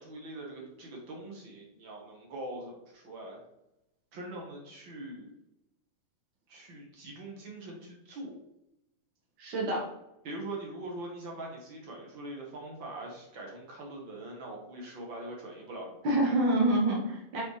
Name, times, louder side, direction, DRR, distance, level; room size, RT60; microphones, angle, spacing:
voice 1, 0.0-3.4 4.1-5.4 6.5-8.3 10.2-16.3, right 1 dB, 55° right, -1 dB, 1.4 m, -42 dB
voice 2, 9.4-9.9 16.0-17.4, right 1 dB, 80° right, -3 dB, 1.0 m, -27 dB
7.2 x 5.4 x 3.3 m, 0.89 s
omnidirectional pair, 4.3 m